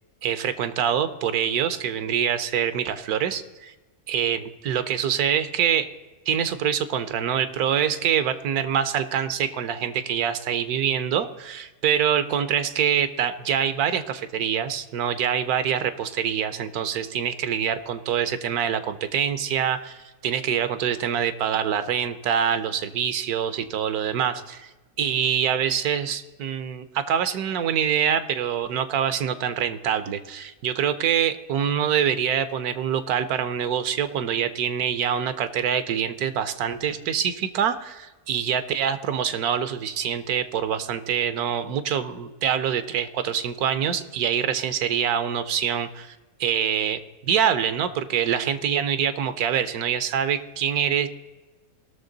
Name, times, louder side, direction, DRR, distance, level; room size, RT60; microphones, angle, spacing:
voice 1, 0.2-3.7 4.1-5.9 6.3-24.7 25.0-51.1, right 8 dB, 80° right, 12 dB, 1.2 m, -25 dB
18.0 x 6.6 x 3.9 m, 1.2 s
omnidirectional pair, 1.6 m